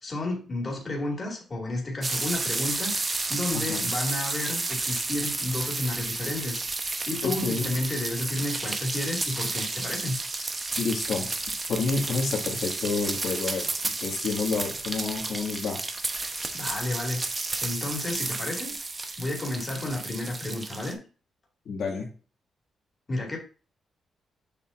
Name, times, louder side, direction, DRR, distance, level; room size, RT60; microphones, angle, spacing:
voice 1, 0.0-6.6 7.1-10.2 16.5-17.3 17.6-18.7 19.2-21.0 23.1-23.4, left 2 dB, 30° left, -1 dB, 2.4 m, -32 dB
sound 1, 2.0-20.9, right 3 dB, 30° right, 0.9 m, -31 dB
voice 2, 7.2-7.7 10.8-11.4 11.7-13.7 14.0-15.9 21.7-22.1, left 4 dB, 75° left, -1 dB, 2.0 m, -29 dB
6.9 x 5.4 x 2.6 m, 0.36 s
cardioid pair, 90°, 0 cm